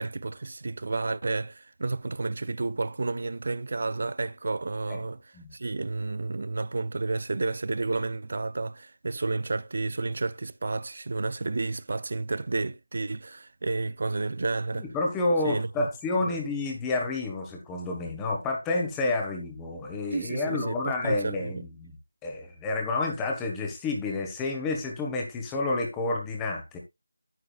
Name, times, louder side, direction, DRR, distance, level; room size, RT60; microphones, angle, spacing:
voice 1, 0.0-14.9 15.4-15.9 16.2-16.4 20.1-21.6, right 3 dB, 45° right, 0.5 m, -31 dB
voice 2, 14.8-21.9 22.2-26.8, left 2 dB, 10° left, 1.5 m, -29 dB
9.8 x 9.5 x 2.4 m
figure-of-eight pair, 165°, 0 cm